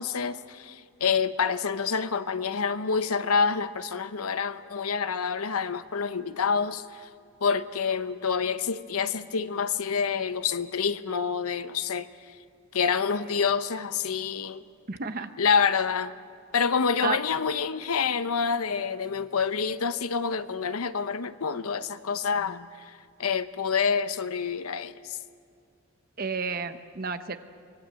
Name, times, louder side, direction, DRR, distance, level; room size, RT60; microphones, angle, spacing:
voice 1, 0.0-7.1 7.4-12.4 12.7-14.6 15.4-16.1 16.5-25.2, left 6 dB, 90° left, 12 dB, 0.8 m, -27 dB
voice 2, 14.9-15.3 17.0-17.2 26.2-27.4, right 5 dB, 45° right, 9 dB, 0.9 m, -31 dB
24.5 x 20.0 x 7.6 m, 2.3 s
head